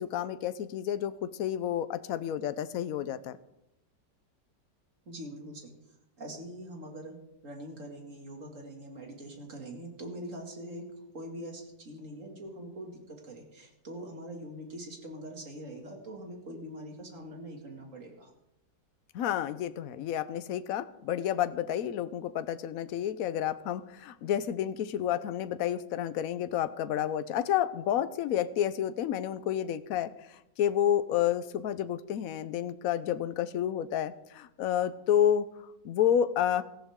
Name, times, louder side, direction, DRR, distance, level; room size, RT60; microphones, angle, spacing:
voice 1, 0.0-3.4 19.1-30.1 30.6-35.5 35.8-36.6, left 10 dB, 65° left, 13 dB, 1.0 m, -30 dB
voice 2, 5.1-5.7 6.2-7.2 7.4-10.8 11.1-18.3, right 1 dB, 45° right, 2 dB, 2.7 m, -43 dB
17.5 x 14.5 x 3.7 m, 0.85 s
omnidirectional pair, 1.9 m